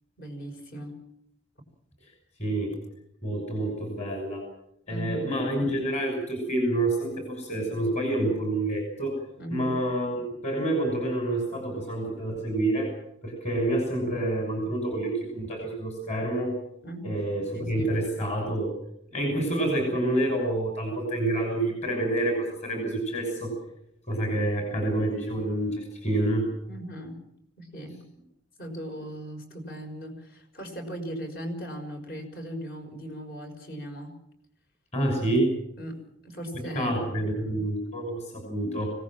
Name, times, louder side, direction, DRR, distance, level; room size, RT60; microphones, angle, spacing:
voice 1, 0.2-1.0 4.9-5.3 9.4-9.8 16.8-17.2 17.5-17.9 26.7-27.2 27.6-28.0 28.6-34.2 35.8-37.1, equal, 55° left, 5 dB, 5.7 m, -38 dB
voice 2, 2.4-2.7 3.2-4.4 4.9-9.2 9.5-12.9 13.2-16.5 17.0-18.7 19.1-23.5 24.1-26.5 34.9-35.5 36.7-38.9, right 1 dB, 35° left, 2 dB, 6.3 m, -28 dB
25.5 x 18.5 x 7.5 m, 0.75 s
head